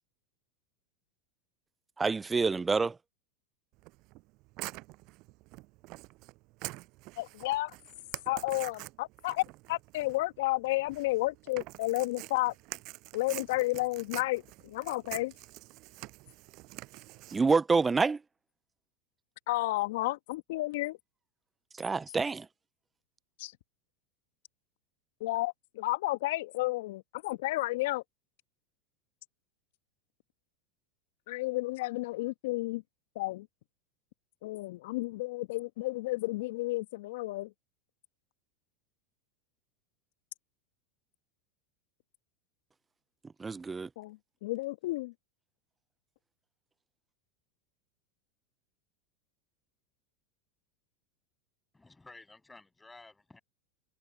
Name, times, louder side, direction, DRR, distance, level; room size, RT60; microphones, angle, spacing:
voice 1, 2.0-2.9 17.3-18.2 21.8-22.5 43.4-43.9, right 4 dB, 15° right, 0.4 m, -27 dB
Tearing, 3.8-17.4, right 23 dB, 55° right, 6.7 m, -46 dB
voice 2, 7.2-7.7 8.3-9.4 9.7-12.5 13.1-14.4 14.7-15.3 19.5-21.0 23.4-23.5 25.2-25.5 25.8-28.0 31.3-32.8 33.2-33.4 34.4-37.5 44.0-45.1, left 19 dB, 65° left, 1.5 m, -32 dB
voice 3, 51.7-53.4, left 3 dB, 10° left, 7.9 m, -53 dB
hypercardioid pair, 90°, 0 cm